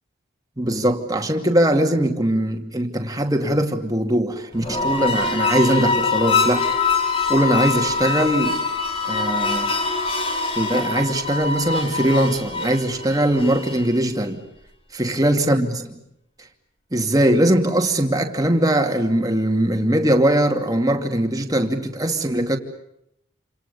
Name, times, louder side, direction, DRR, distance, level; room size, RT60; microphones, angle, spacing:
voice 1, 0.6-6.7 7.3-8.6 9.0-9.8 10.6-14.4 14.9-16.0 16.9-22.6, right 1 dB, 15° right, 2.6 m, -21 dB
sound 1, 4.6-14.0, left 4 dB, 25° left, 3.1 m, -24 dB
29.0 x 28.0 x 7.0 m
head